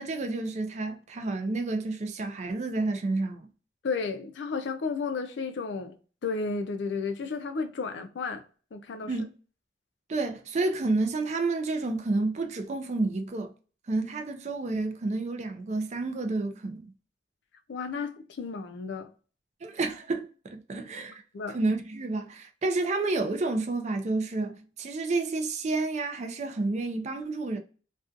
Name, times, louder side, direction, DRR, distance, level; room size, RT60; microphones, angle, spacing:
voice 1, 0.0-3.5 9.1-9.3 10.1-13.5 13.9-16.9 19.6-21.2 21.5-27.6, right 3 dB, 40° right, 0.4 m, -30 dB
voice 2, 3.8-5.9 6.2-8.4 8.7-9.1 17.7-19.1 21.3-21.6, left 4 dB, 80° left, 0.4 m, -32 dB
2.4 x 2.3 x 2.5 m
head